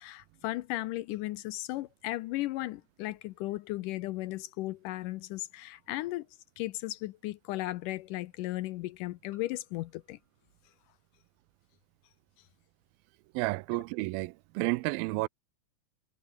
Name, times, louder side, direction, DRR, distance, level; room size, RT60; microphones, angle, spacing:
voice 1, 0.0-6.3 6.6-10.2 13.7-13.8, left 17 dB, 80° left, 2.0 m, -36 dB
sound 1, 5.4-5.5 7.1-7.2 9.3-11.8, left 2 dB, 30° left, 8.2 m, -72 dB
voice 2, 13.3-15.3, right 22 dB, 90° right, 2.4 m, -31 dB
omnidirectional pair, 4.1 m